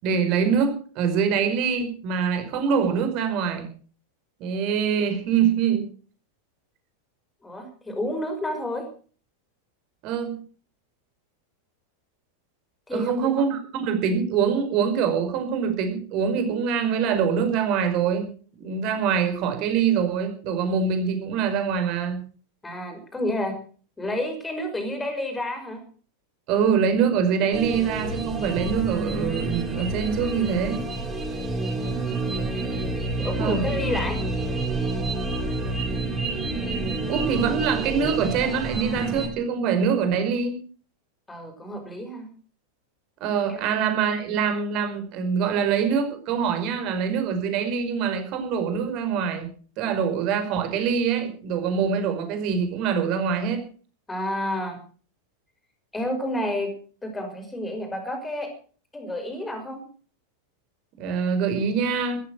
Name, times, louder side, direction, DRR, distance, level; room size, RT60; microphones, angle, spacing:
voice 1, 0.0-3.7 4.4-5.8 10.0-10.4 12.9-18.3 18.6-22.2 26.5-30.8 33.4-33.6 37.1-40.6 43.2-49.5 49.8-53.6 61.0-62.2, right 6 dB, 40° right, 6 dB, 5.1 m, -24 dB
voice 2, 7.4-8.9 12.9-13.4 22.6-23.6 24.0-25.8 32.1-34.2 41.3-42.3 43.5-43.6 54.1-54.8 55.9-56.7 57.0-58.5 58.9-59.9, left 1 dB, 10° left, 6 dB, 5.7 m, -30 dB
sound 1, 27.5-39.3, right 2 dB, 15° right, 7.0 m, -28 dB
14.5 x 14.0 x 6.4 m, 0.42 s
figure-of-eight pair, 90°, 0 cm